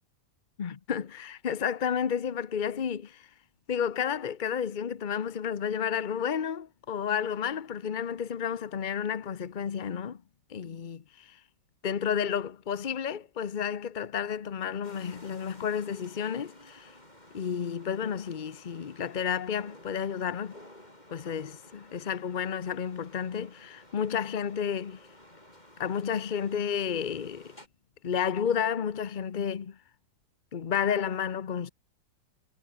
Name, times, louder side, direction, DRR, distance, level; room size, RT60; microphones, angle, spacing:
voice 1, 0.6-3.3 3.7-10.2 10.5-11.4 11.8-16.9 17.3-20.6 21.1-25.0 25.8-27.6 28.0-29.8 30.5-31.7, left 7 dB, 60° left, 0.5 m, -31 dB
sound 1, 14.8-27.7, left 1 dB, 20° left, 7.5 m, -54 dB
omnidirectional pair, 2.1 m